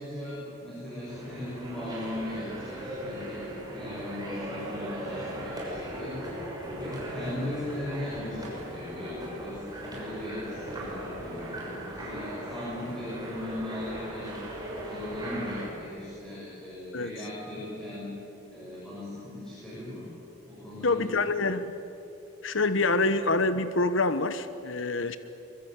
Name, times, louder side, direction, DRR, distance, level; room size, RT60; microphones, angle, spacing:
voice 1, 0.0-6.3 6.8-14.3 14.8-18.1 18.5-20.1 20.5-21.5, left 1 dB, 5° left, -9 dB, 7.6 m, -38 dB
sound 1, 1.1-15.7, equal, 20° right, 6.4 m, -38 dB
voice 2, 20.8-21.7 22.4-25.2, left 3 dB, 65° left, 12 dB, 1.1 m, -26 dB
23.5 x 23.5 x 9.6 m, 2.8 s
head